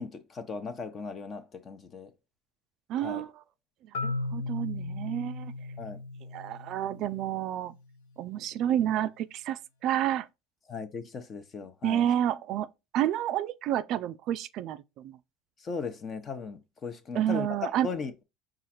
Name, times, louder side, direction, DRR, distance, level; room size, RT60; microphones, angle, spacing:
voice 1, 0.0-2.1 3.0-3.2 5.8-6.0 10.7-12.0 15.6-17.5 17.8-18.2, left 5 dB, 35° left, 0.8 m, -37 dB
voice 2, 2.9-3.4 3.8-5.5 6.3-7.8 8.2-10.3 11.8-12.7 12.9-15.2 17.1-17.9, right 11 dB, 55° right, 0.4 m, -30 dB
Marimba xylophone, 3.9-7.8, left 3 dB, 90° left, 0.6 m, -37 dB
4.8 x 2.5 x 4.2 m
supercardioid pair, 105°, 0 cm